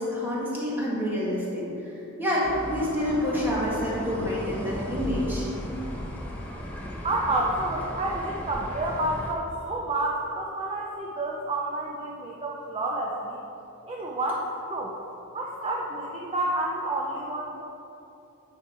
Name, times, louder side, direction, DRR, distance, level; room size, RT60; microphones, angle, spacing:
voice 1, 0.0-1.7 2.2-5.5, left 1 dB, 10° right, -7 dB, 1.8 m, -27 dB
sound 1, 2.4-9.3, equal, 5° left, 0.9 m, -36 dB
voice 2, 7.0-13.4 13.9-15.0 15.3-17.6, right 2 dB, 25° right, -2 dB, 0.5 m, -29 dB
9.4 x 4.7 x 4.4 m, 2.9 s
head